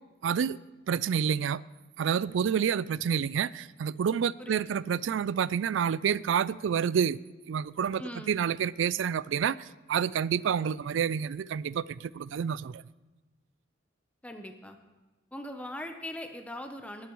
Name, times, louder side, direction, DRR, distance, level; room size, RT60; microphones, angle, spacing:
voice 1, 0.2-0.6 0.9-1.6 2.0-7.2 7.5-8.0 8.3-12.8, right 7 dB, 75° right, 0.3 m, -28 dB
voice 2, 4.4-4.8 8.0-8.3 14.2-14.8 15.3-17.1, left 1 dB, 5° left, 0.7 m, -40 dB
20.5 x 11.5 x 3.1 m
head